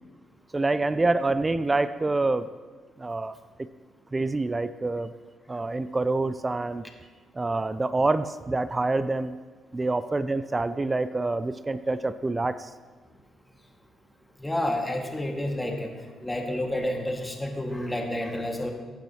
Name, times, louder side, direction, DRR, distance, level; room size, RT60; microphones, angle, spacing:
voice 1, 0.5-2.5 3.0-3.4 4.1-5.1 5.5-6.8 7.3-9.4 9.7-12.7, right 2 dB, 25° right, 13 dB, 0.4 m, -26 dB
voice 2, 14.4-15.9 16.2-18.7, left 1 dB, 15° left, 2 dB, 1.8 m, -29 dB
15.0 x 9.0 x 2.9 m, 1.4 s
hypercardioid pair, 50°, 0 cm